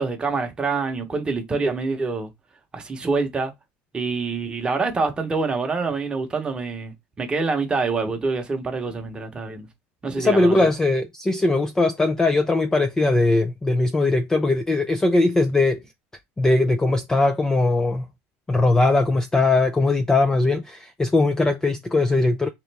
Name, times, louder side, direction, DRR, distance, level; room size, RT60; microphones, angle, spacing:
voice 1, 0.0-2.3 2.7-3.5 3.9-9.7 10.0-10.7, right 4 dB, 15° right, 0.9 m, -26 dB
voice 2, 10.2-15.8 16.4-18.1 18.5-22.5, left 2 dB, 10° left, 0.4 m, -20 dB
3.6 x 3.0 x 3.4 m
supercardioid pair, 140°, 6 cm